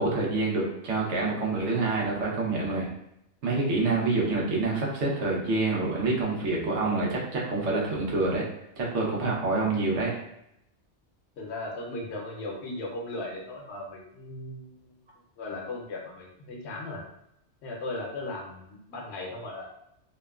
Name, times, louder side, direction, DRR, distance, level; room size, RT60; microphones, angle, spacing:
voice 1, 0.0-2.9 3.4-8.4 8.8-10.1, right 3 dB, 85° right, -3 dB, 1.1 m, -27 dB
voice 2, 11.4-14.9 15.4-17.0 17.6-19.7, left 2 dB, 70° left, -1 dB, 0.9 m, -37 dB
2.8 x 2.1 x 2.3 m, 0.79 s
omnidirectional pair, 1.2 m